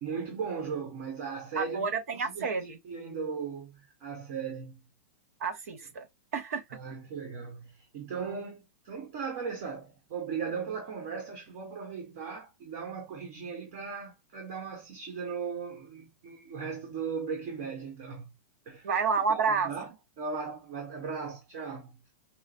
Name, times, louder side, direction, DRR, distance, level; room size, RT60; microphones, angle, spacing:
voice 1, 0.0-1.9 2.1-4.8 6.7-18.3 18.7-18.9 19.3-19.9 20.2-21.9, right 5 dB, 50° right, 1.3 m, -37 dB
voice 2, 1.5-2.8 5.4-6.1 6.3-6.6 18.8-19.7, right 5 dB, 80° right, 1.0 m, -29 dB
5.5 x 2.0 x 2.5 m
hypercardioid pair, 140°, 8 cm